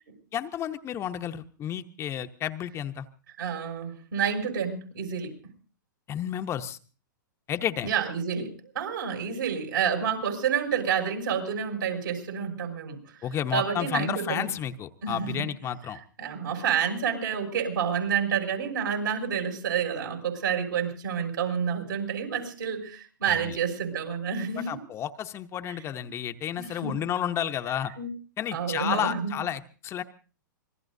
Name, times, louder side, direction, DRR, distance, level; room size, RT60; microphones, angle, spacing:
voice 1, 0.3-3.1 6.1-6.8 7.5-7.9 13.2-16.0 23.3-23.6 24.6-27.9 28.4-30.0, left 10 dB, 25° left, 8 dB, 0.9 m, -31 dB
voice 2, 3.4-5.3 7.8-13.0 13.5-14.5 15.0-15.4 16.2-24.8 25.7-25.8 26.6-27.0 28.0-28.1 28.5-29.4, right 7 dB, 75° right, 3 dB, 7.1 m, -29 dB
26.5 x 20.5 x 2.7 m, 0.39 s
hypercardioid pair, 125°, 11 cm